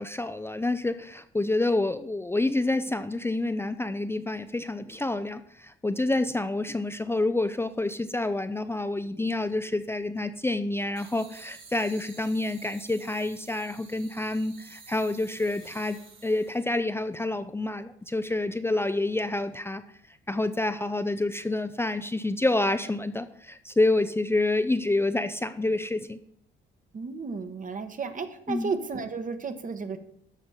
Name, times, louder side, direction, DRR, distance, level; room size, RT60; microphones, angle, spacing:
voice 1, 0.0-19.8 20.1-26.2 28.5-28.7, left 2 dB, 10° left, 9 dB, 0.5 m, -28 dB
sound 1, 11.0-16.7, right 5 dB, 85° right, 3.3 m, -51 dB
voice 2, 26.9-30.0, right 5 dB, 40° right, 8 dB, 1.2 m, -33 dB
13.0 x 4.9 x 5.7 m, 0.70 s
cardioid pair, 90°, 20 cm